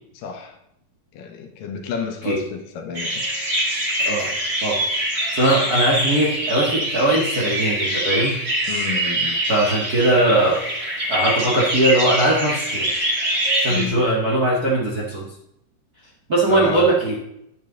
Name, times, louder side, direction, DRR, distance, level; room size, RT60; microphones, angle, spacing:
voice 1, 0.2-0.6 1.1-3.2 8.7-9.4 13.7-14.0 16.5-17.0, left 6 dB, 75° left, 5 dB, 2.5 m, -30 dB
sound 1, 2.9-13.9, right 1 dB, 25° right, 2.0 m, -24 dB
voice 2, 5.3-8.4 9.5-10.6 11.1-12.9 13.6-15.3 16.3-17.2, right 1 dB, 40° right, -4 dB, 1.3 m, -20 dB
10.5 x 8.7 x 3.9 m, 0.79 s
omnidirectional pair, 4.1 m